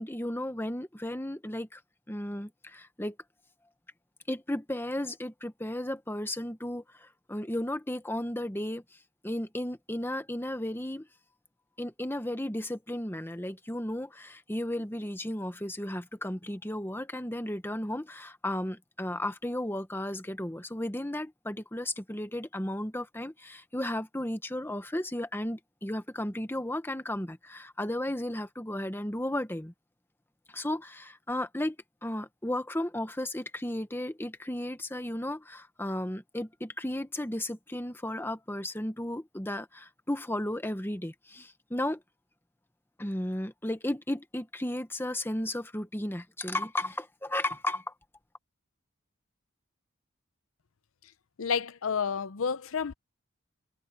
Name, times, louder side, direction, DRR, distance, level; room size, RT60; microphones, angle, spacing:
voice 1, 0.0-1.8 2.1-3.2 4.3-8.8 9.2-11.1 11.8-29.7 30.5-31.8 32.0-42.0 43.0-47.8, left 1 dB, 10° left, 1.3 m, -34 dB
voice 2, 51.4-52.9, left 6 dB, 80° left, 0.7 m, -30 dB
head